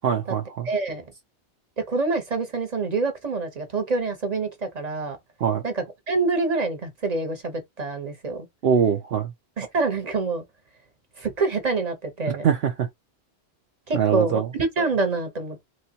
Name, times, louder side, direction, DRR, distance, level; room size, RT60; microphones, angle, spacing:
voice 1, 0.0-0.7 5.4-5.6 8.6-9.3 12.3-12.9 13.9-14.5, right 7 dB, 65° right, 0.9 m, -23 dB
voice 2, 0.6-1.1 1.9-5.2 5.6-8.5 9.6-10.4 11.2-12.4 13.9-15.6, right 3 dB, 40° right, 1.1 m, -26 dB
3.1 x 3.1 x 2.8 m
omnidirectional pair, 1.1 m